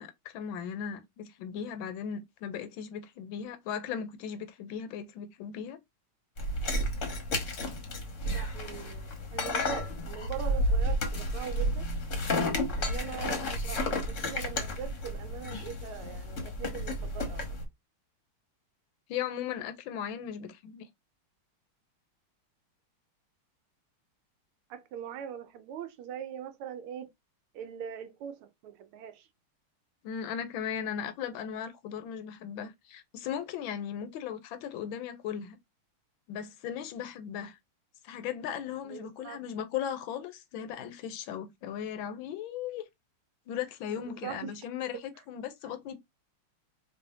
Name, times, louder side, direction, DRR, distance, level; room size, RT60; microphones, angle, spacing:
voice 1, 0.0-5.8 19.1-20.9 30.0-35.6 36.3-37.6 38.0-42.9 43.5-46.0, left 8 dB, 75° left, 1.4 m, -37 dB
sound 1, 6.4-17.6, left 1 dB, 45° left, 1.1 m, -32 dB
voice 2, 8.2-11.9 12.8-17.4 24.7-27.1 27.5-29.3 38.8-39.4 43.9-44.7 44.9-45.0, right 8 dB, 80° right, 1.5 m, -42 dB
4.8 x 2.7 x 2.6 m
omnidirectional pair, 2.4 m